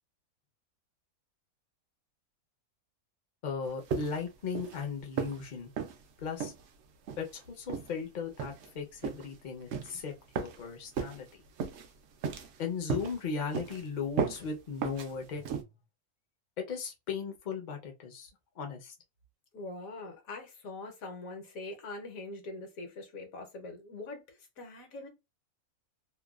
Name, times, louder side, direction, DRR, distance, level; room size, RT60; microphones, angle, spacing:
voice 1, 3.4-5.7 6.2-6.5 7.2-11.4 12.6-15.5 16.6-18.3 18.6-18.9, left 5 dB, 45° left, 0.6 m, -37 dB
sound 1, 3.9-4.3 4.5-4.8 5.2-5.4 5.8-6.0 6.4-6.6 7.1-7.3 7.7-7.9 8.4-8.7 9.0-9.2 9.7-9.9 10.3-10.6 11.0-11.2 11.6-11.9 12.2-12.6 12.9-13.2 13.5-13.8 14.2-14.4 14.8-15.1 15.4-15.6, right 6 dB, 65° right, 0.7 m, -34 dB
voice 2, 19.5-25.1, left 2 dB, 70° left, 1.3 m, -43 dB
2.9 x 2.2 x 2.3 m
omnidirectional pair, 1.6 m